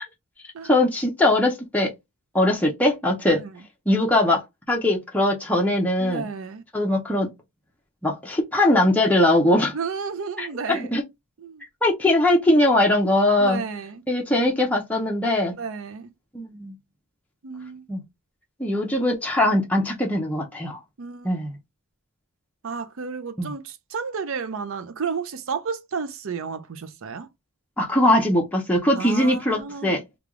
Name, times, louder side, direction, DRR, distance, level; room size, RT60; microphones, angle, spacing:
voice 1, 0.7-1.9 2.3-3.4 3.9-4.4 4.7-6.3 6.7-7.3 8.0-9.8 10.4-11.0 11.8-13.6 14.1-15.5 16.3-16.7 17.9-18.0 18.6-20.8 21.2-21.6 23.4-23.5 27.8-30.0, left 1 dB, 5° left, 0.6 m, -21 dB
voice 2, 6.0-6.6 9.7-10.9 11.4-11.6 13.4-14.0 15.6-16.1 17.4-17.8 21.0-21.3 22.6-27.3 29.0-30.0, right 5 dB, 60° right, 0.5 m, -32 dB
3.3 x 2.3 x 3.6 m
head